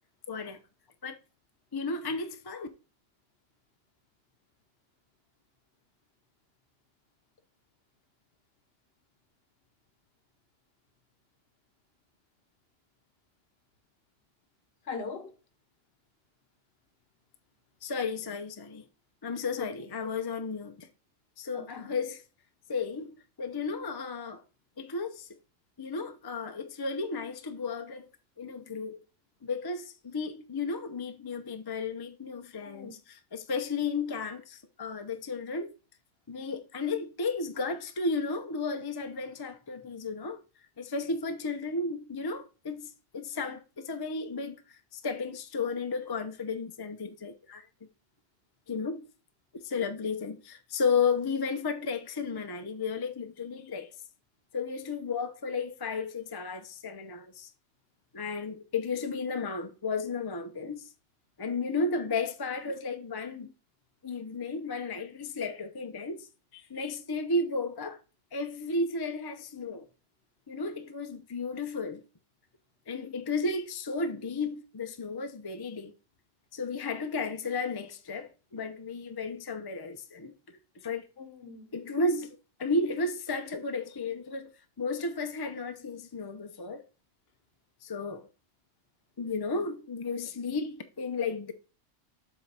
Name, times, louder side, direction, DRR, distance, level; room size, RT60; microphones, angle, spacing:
voice 1, 0.3-0.6 1.0-1.2 1.7-2.7 17.8-18.8 19.2-20.9 21.4-22.2 22.7-24.4 24.8-25.3 25.8-28.1 28.4-29.0 29.4-35.7 36.3-40.4 40.8-47.7 48.7-49.1 49.5-53.9 54.5-57.5 58.1-60.9 61.4-63.5 64.0-66.3 66.5-68.0 68.3-69.9 70.5-72.0 72.9-75.9 76.5-80.3 80.8-81.1 81.7-84.5 84.8-86.8 87.8-88.3 89.2-91.5, left 4 dB, 25° left, 0.6 m, -33 dB
voice 2, 14.9-15.3 19.6-19.9 21.5-21.9 32.6-32.9 81.2-81.7, left 4 dB, 55° left, 1.2 m, -41 dB
7.5 x 3.9 x 4.7 m
omnidirectional pair, 1.3 m